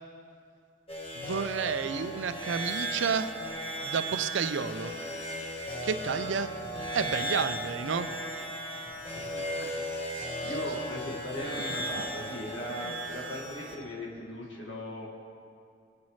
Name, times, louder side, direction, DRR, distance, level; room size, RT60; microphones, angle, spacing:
sound 1, 0.9-13.8, right 1 dB, 30° left, 1.3 m, -36 dB
voice 1, 1.2-3.3 3.8-4.9 5.8-6.5 6.9-8.1 10.4-10.5, right 5 dB, 65° right, 11 dB, 0.5 m, -30 dB
voice 2, 9.3-15.1, left 1 dB, 65° left, -4 dB, 1.9 m, -39 dB
21.0 x 8.5 x 3.2 m, 2.4 s
head